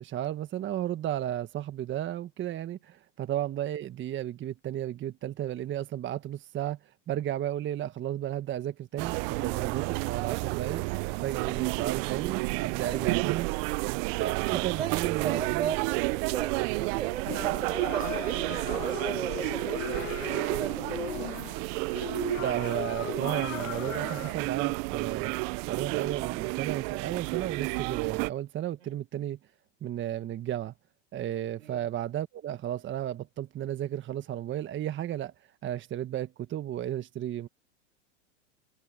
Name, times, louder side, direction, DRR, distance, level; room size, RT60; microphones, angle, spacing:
voice 1, 0.0-6.8 7.1-10.9 11.2-13.5 14.2-15.8 22.4-29.4 29.8-30.7 31.1-35.3 35.6-37.5, right 12 dB, 30° right, 1.5 m, -34 dB
sound 1, 9.0-28.3, right 30 dB, 50° right, 0.6 m, -31 dB
voice 2, 12.8-13.3 14.4-21.4 28.8-28.9 31.6-31.9, right 9 dB, 90° right, 5.0 m, -37 dB
sound 2, 17.3-24.3, left 11 dB, 85° left, 1.5 m, -38 dB
hypercardioid pair, 105°, 37 cm